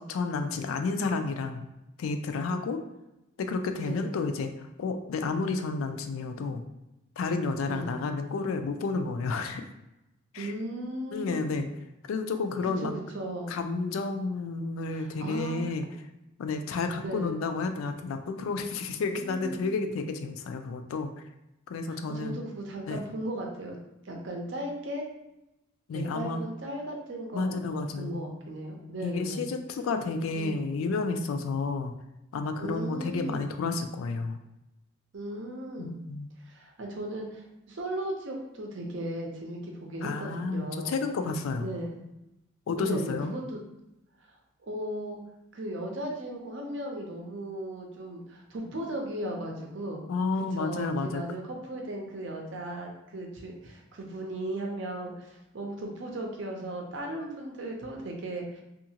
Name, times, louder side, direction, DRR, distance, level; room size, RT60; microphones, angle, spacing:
voice 1, 0.0-1.7 2.0-2.8 3.4-6.6 7.2-9.7 10.3-10.5 11.1-11.7 12.1-12.9 13.5-15.8 16.4-21.1 21.7-22.4 22.9-23.0 25.9-26.4 27.3-28.2 29.0-31.9 32.3-34.4 35.8-36.3 40.0-41.7 42.7-43.3 50.1-51.2, left 4 dB, 85° left, 7 dB, 0.3 m, -31 dB
voice 2, 10.4-11.5 12.8-13.5 14.9-15.6 17.0-17.4 19.1-19.7 22.1-23.8 24.0-25.1 25.9-29.5 30.3-30.6 32.6-33.4 35.1-35.9 36.4-41.0 41.6-41.9 42.8-43.6 44.6-45.2 45.5-50.0 50.5-58.6, right 1 dB, 65° right, 1 dB, 0.6 m, -36 dB
2.7 x 2.5 x 2.8 m, 0.91 s
head